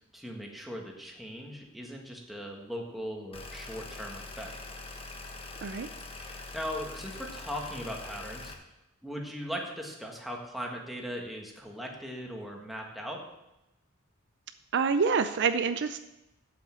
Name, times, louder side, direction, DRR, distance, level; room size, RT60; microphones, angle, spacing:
voice 1, 0.1-4.5 6.2-8.5 9.0-13.2, equal, ahead, -1 dB, 1.8 m, -39 dB
sound 1, 3.3-8.5, left 3 dB, 25° left, 1.2 m, -43 dB
voice 2, 14.7-16.0, right 5 dB, 55° right, 10 dB, 0.5 m, -26 dB
8.7 x 7.8 x 7.5 m, 0.93 s
head